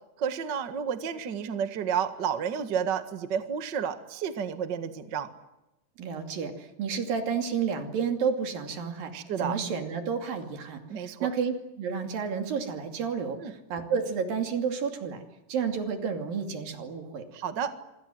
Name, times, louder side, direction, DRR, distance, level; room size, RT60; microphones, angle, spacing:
voice 1, 0.2-5.3 9.1-9.6 10.9-11.3 13.4-13.5 17.3-17.7, right 7 dB, 40° right, 9 dB, 1.7 m, -31 dB
voice 2, 6.0-9.1 9.4-15.2 15.5-17.2, right 6 dB, 80° right, 5 dB, 4.4 m, -31 dB
26.0 x 25.5 x 7.8 m, 0.94 s
omnidirectional pair, 4.0 m